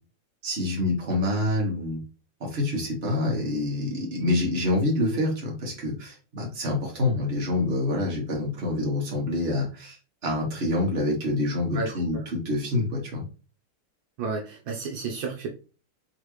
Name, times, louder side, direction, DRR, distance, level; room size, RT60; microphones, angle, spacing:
voice 1, 0.4-2.0 2.4-10.0 10.2-13.2, left 2 dB, 35° right, -2 dB, 1.6 m, -26 dB
voice 2, 14.2-15.5, right 4 dB, 75° right, 0 dB, 1.5 m, -31 dB
4.0 x 3.5 x 3.1 m, 0.34 s
omnidirectional pair, 2.2 m